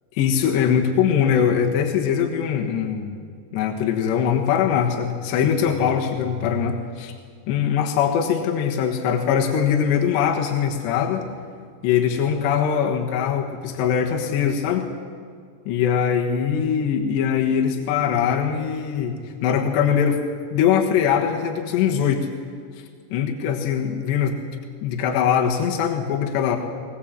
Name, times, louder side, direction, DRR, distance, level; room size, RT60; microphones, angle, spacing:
voice 1, 0.2-3.2 3.5-7.1 7.5-11.3 11.8-14.9 15.7-20.2 20.5-22.3 23.1-24.4 24.8-26.6, left 8 dB, 75° left, 1 dB, 3.6 m, -22 dB
21.0 x 20.0 x 7.5 m, 2.1 s
omnidirectional pair, 5.1 m